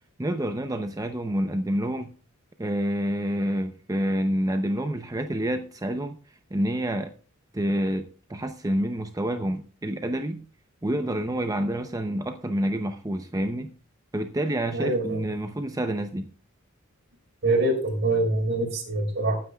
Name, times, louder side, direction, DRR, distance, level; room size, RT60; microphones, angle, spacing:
voice 1, 0.2-2.1 2.6-6.2 6.5-7.1 7.5-10.4 10.8-13.7 14.1-16.3, right 1 dB, 15° right, 7 dB, 0.7 m, -28 dB
voice 2, 14.7-15.2 17.4-19.4, right 2 dB, 55° right, -1 dB, 5.6 m, -24 dB
19.5 x 9.4 x 2.4 m, 0.36 s
head